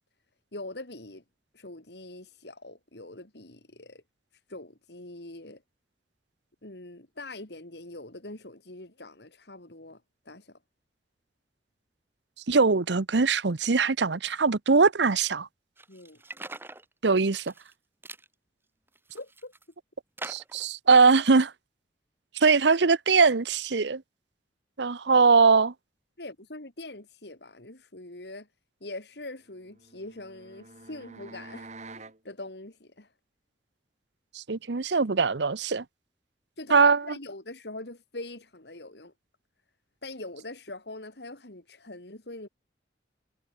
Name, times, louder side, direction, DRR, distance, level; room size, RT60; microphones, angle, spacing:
voice 1, 0.5-1.2 1.5-4.0 4.5-5.6 6.6-10.6 15.9-16.2 19.1-19.5 26.2-28.5 28.8-33.1 36.6-39.1 40.0-42.5, left 2 dB, 65° left, 3.1 m, -43 dB
voice 2, 12.5-15.5 17.0-17.4 20.2-21.5 22.4-24.0 24.8-25.7 34.4-35.8 36.7-37.0, right 4 dB, 75° right, 0.9 m, -21 dB
sound 1, 15.8-16.8 17.3-17.7 18.0-18.3 18.9-19.6 20.2-20.7, right 2 dB, 15° right, 2.1 m, -42 dB
sound 2, 29.6-32.2, right 3 dB, 40° right, 3.7 m, -47 dB
head